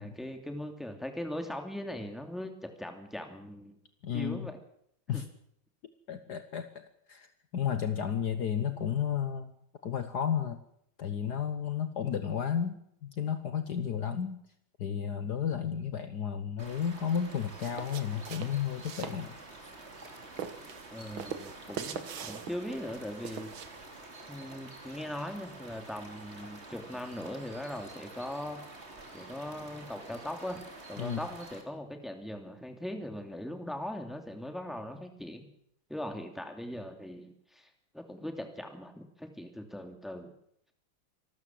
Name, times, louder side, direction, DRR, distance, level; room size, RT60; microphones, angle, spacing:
voice 1, 0.0-3.8 4.1-4.6 5.1-5.2 20.9-23.5 24.3-28.6 29.1-30.6 30.9-35.5 35.9-40.3, left 1 dB, ahead, 5 dB, 2.6 m, -40 dB
voice 2, 4.0-4.5 5.1-5.2 6.1-7.3 7.5-9.5 9.8-10.6 11.0-14.4 14.8-19.4 31.0-31.2, left 8 dB, 60° left, 10 dB, 1.6 m, -32 dB
sound 1, 16.6-31.6, right 2 dB, 30° right, 3.3 m, -48 dB
sound 2, 17.4-24.0, right 8 dB, 80° right, 2.2 m, -43 dB
25.5 x 13.0 x 7.7 m, 0.71 s
omnidirectional pair, 2.1 m